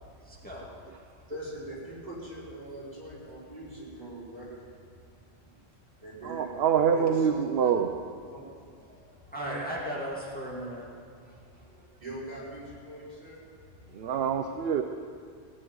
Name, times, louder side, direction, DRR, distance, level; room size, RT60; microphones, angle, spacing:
voice 1, 0.1-0.9 1.2-1.3 8.9-10.9 11.2-12.0, equal, 10° left, -4 dB, 2.1 m, -38 dB
voice 2, 1.3-4.6 6.0-6.6 6.9-7.7 8.3-8.7 9.4-9.6 12.0-13.4, right 1 dB, 40° right, -7 dB, 5.4 m, -42 dB
voice 3, 6.2-7.9 13.9-14.8, right 7 dB, 65° right, 6 dB, 0.9 m, -25 dB
17.5 x 7.8 x 9.5 m, 2.2 s
omnidirectional pair, 1.1 m